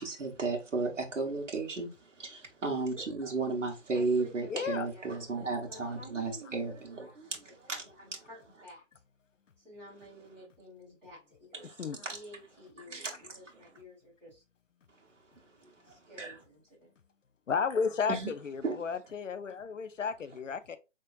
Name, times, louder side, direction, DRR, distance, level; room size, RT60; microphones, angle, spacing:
voice 1, 0.0-1.9 2.2-7.1 7.4-7.8 12.0-12.2 12.9-13.1 15.6-15.7 16.2-16.3 18.1-18.3 18.6-18.8, right 3 dB, 80° right, 1.4 m, -33 dB
voice 2, 3.9-8.8 9.6-14.4 15.8-16.9, left 1 dB, 5° left, 2.0 m, -52 dB
voice 3, 4.5-4.9 11.8-12.0 17.5-20.8, left 6 dB, 85° left, 0.7 m, -33 dB
4.2 x 3.6 x 2.4 m
figure-of-eight pair, 160°, 37 cm